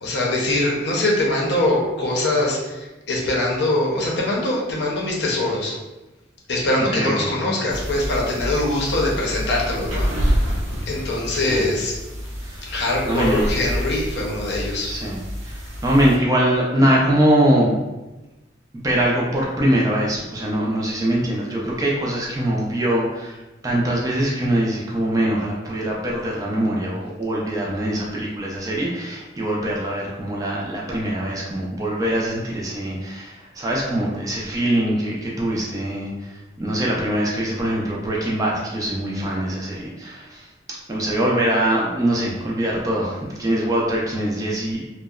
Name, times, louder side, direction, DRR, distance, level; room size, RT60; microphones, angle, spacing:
voice 1, 0.0-5.7 6.5-10.5 10.9-11.9 12.7-14.9, left 1 dB, 65° left, -3 dB, 0.6 m, -23 dB
voice 2, 6.9-7.3 11.4-11.6 12.4-12.7 13.1-13.5 14.8-17.7 18.7-40.5 40.9-44.8, right 1 dB, 20° right, -4 dB, 0.3 m, -23 dB
sound 1, 7.7-16.2, equal, 85° right, 0.6 m, -28 dB
2.7 x 2.0 x 2.3 m, 1.1 s
head